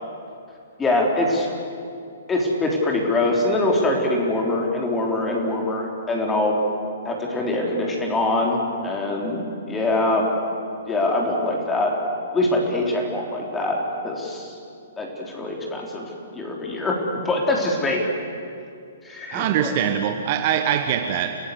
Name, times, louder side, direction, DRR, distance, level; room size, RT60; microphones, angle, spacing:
voice 1, 0.8-1.5 2.3-6.6 7.1-10.2 10.9-11.9 12.3-13.8 14.0-14.6 15.0-16.1 16.3-18.0 19.0-19.8, left 2 dB, 15° left, -1 dB, 3.6 m, -23 dB
voice 2, 19.3-21.4, right 9 dB, 40° right, 7 dB, 1.2 m, -23 dB
29.5 x 17.5 x 8.2 m, 2.5 s
figure-of-eight pair, 120°, 0 cm